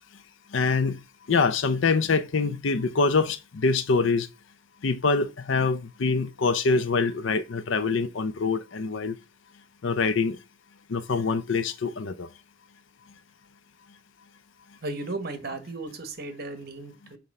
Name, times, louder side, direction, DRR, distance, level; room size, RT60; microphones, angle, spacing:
voice 1, 0.5-1.0 1.3-4.3 4.8-9.1 9.8-10.4 10.9-12.3, left 4 dB, 65° left, 0.5 m, -25 dB
voice 2, 14.8-17.2, right 2 dB, 50° right, 1.2 m, -35 dB
5.7 x 3.7 x 5.4 m
head